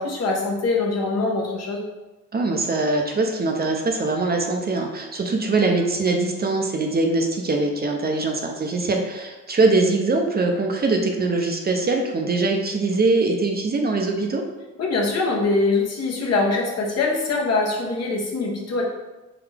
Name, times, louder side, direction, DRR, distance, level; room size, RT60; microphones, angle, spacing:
voice 1, 0.0-1.8 14.8-18.8, left 3 dB, 55° left, -2 dB, 1.1 m, -23 dB
voice 2, 2.3-14.4, right 3 dB, 30° right, 2 dB, 0.6 m, -22 dB
3.9 x 3.4 x 3.4 m, 1.1 s
cardioid pair, 90°, 30 cm